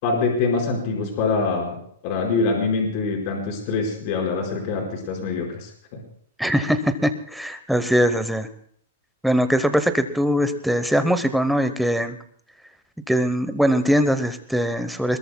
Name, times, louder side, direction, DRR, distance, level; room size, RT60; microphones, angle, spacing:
voice 1, 0.0-1.7 2.0-6.0, left 4 dB, 40° left, 0 dB, 4.9 m, -24 dB
voice 2, 6.4-8.5 9.2-12.2 13.1-15.2, equal, ahead, 9 dB, 0.9 m, -21 dB
22.5 x 21.0 x 2.3 m, 0.62 s
hypercardioid pair, 160°, 0 cm